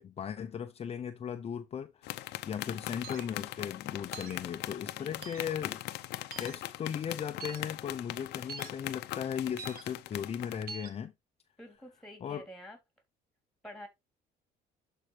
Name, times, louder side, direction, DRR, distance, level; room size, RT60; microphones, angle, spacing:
voice 1, 0.0-2.2 2.5-5.8 6.4-11.1 12.2-12.5, left 8 dB, 35° left, 0.6 m, -37 dB
sound 1, 2.0-10.6, left 16 dB, 85° left, 0.7 m, -40 dB
sound 2, 3.0-3.3 4.1-4.4 5.2-5.5 6.3-6.6 7.4-7.6 8.5-8.7 9.6-9.8 10.7-10.9, right 5 dB, 60° right, 1.5 m, -44 dB
voice 2, 11.6-12.8 13.6-13.9, left 1 dB, ahead, 3.4 m, -49 dB
11.5 x 4.5 x 3.2 m
cardioid pair, 110°, 17 cm